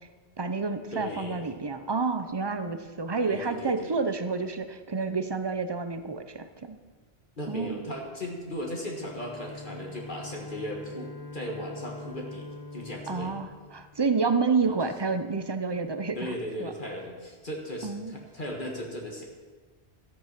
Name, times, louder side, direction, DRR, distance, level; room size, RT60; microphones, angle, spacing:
voice 1, 0.4-6.8 7.5-7.8 13.1-16.3 16.6-16.7 17.8-18.1, right 4 dB, 30° right, 9 dB, 0.7 m, -29 dB
voice 2, 0.9-1.4 3.2-3.9 7.4-13.4 14.6-14.8 16.2-19.2, equal, 50° left, 0 dB, 1.7 m, -37 dB
Bowed string instrument, 8.9-14.5, left 2 dB, 20° left, 1.1 m, -43 dB
13.5 x 8.6 x 5.8 m, 1.5 s
omnidirectional pair, 1.1 m